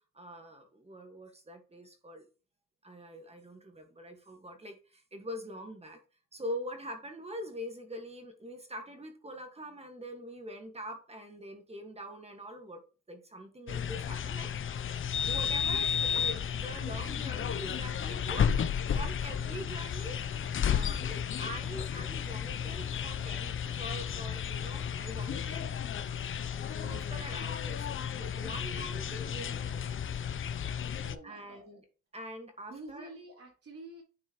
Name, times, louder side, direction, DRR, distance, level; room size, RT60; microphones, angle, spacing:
voice 1, 0.1-2.2 2.8-6.0 6.3-12.8 13.1-14.9 15.2-18.5 18.9-20.2 20.6-25.7 26.4-26.5 26.8-29.9 31.2-31.9 32.1-33.1, equal, 20° right, 5 dB, 1.7 m, -44 dB
sound 1, 13.7-31.1, left 8 dB, 40° left, 0.6 m, -33 dB
voice 2, 31.0-31.8 32.7-34.0, right 2 dB, 50° right, 0 dB, 3.8 m, -48 dB
9.8 x 4.4 x 3.0 m, 0.35 s
cardioid pair, 90°, 30 cm